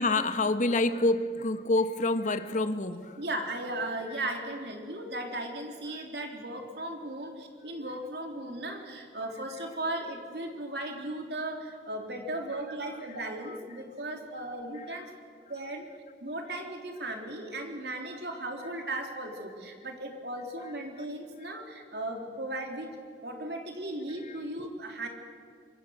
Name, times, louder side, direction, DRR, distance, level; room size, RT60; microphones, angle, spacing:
voice 1, 0.0-3.2 5.9-6.0 13.0-13.2 13.4-13.6 14.7-15.1 17.1-17.2 21.0-21.1 21.4-21.5 24.2-24.7, left 2 dB, 45° left, 10 dB, 1.2 m, -29 dB
voice 2, 3.2-15.1 15.5-15.9 16.2-22.9 23.2-25.1, right 1 dB, 65° right, 3 dB, 3.4 m, -36 dB
25.5 x 22.0 x 6.5 m, 2.3 s
head